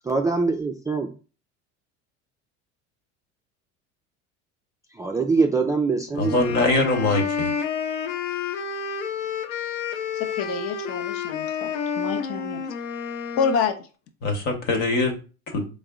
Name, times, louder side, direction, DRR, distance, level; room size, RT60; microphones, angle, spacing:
voice 1, 0.0-1.1 4.9-6.4, right 4 dB, 10° right, 3 dB, 0.3 m, -23 dB
sound 1, 6.2-13.7, left 6 dB, 85° left, 0.5 m, -30 dB
voice 2, 6.2-7.5 14.2-15.2 15.5-15.7, left 2 dB, 60° left, 3 dB, 1.2 m, -23 dB
voice 3, 10.1-12.6 13.4-13.7, left 6 dB, 40° left, 6 dB, 0.7 m, -27 dB
3.6 x 2.1 x 3.5 m, 0.35 s
hypercardioid pair, 85°, 35 cm